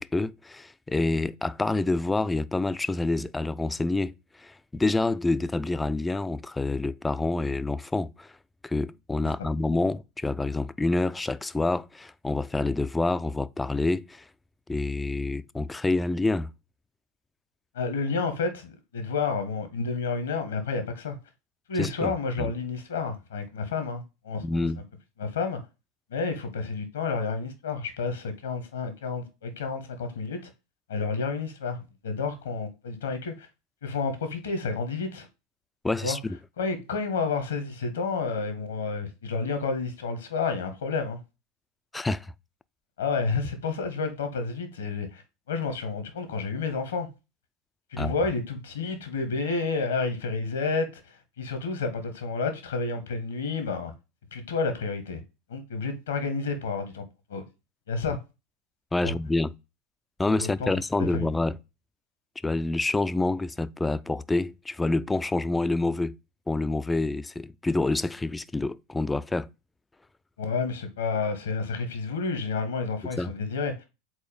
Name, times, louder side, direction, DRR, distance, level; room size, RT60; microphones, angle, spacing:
voice 1, 0.0-4.1 4.4-8.3 8.6-14.2 14.7-16.5 21.8-22.5 24.4-24.8 35.8-36.4 41.9-42.3 48.0-48.1 58.9-59.5 60.2-61.6 62.4-66.2 66.5-69.5 73.2-73.3, left 2 dB, 10° left, 0.4 m, -27 dB
voice 2, 17.7-21.2 21.7-24.7 25.2-25.6 26.1-30.5 30.9-33.5 33.8-35.3 36.0-36.2 36.6-41.2 43.0-45.2 45.5-47.1 47.9-53.9 54.3-55.2 55.5-57.0 57.3-57.4 57.9-58.2 59.0-59.1 60.4-60.7 61.0-61.3 70.4-73.9, left 4 dB, 75° left, 1.5 m, -30 dB
4.8 x 4.2 x 5.1 m
hypercardioid pair, 85°, 0 cm